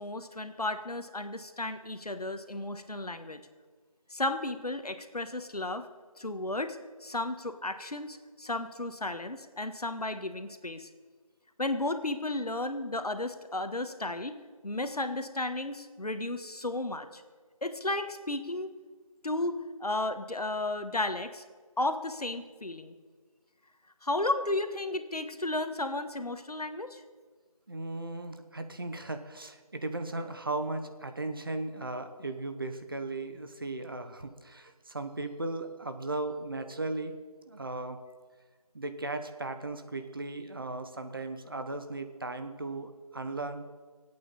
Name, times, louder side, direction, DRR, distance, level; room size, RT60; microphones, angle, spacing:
voice 1, 0.0-3.4 4.1-5.9 6.2-10.9 11.6-14.4 14.6-17.2 17.6-18.7 19.2-21.4 21.8-22.9 24.0-27.0, left 2 dB, 90° left, 8 dB, 1.4 m, -33 dB
voice 2, 27.7-37.2 37.5-38.0 38.7-43.6, right 2 dB, 35° right, 7 dB, 0.9 m, -37 dB
24.5 x 8.6 x 4.1 m, 1.5 s
figure-of-eight pair, 170°, 19 cm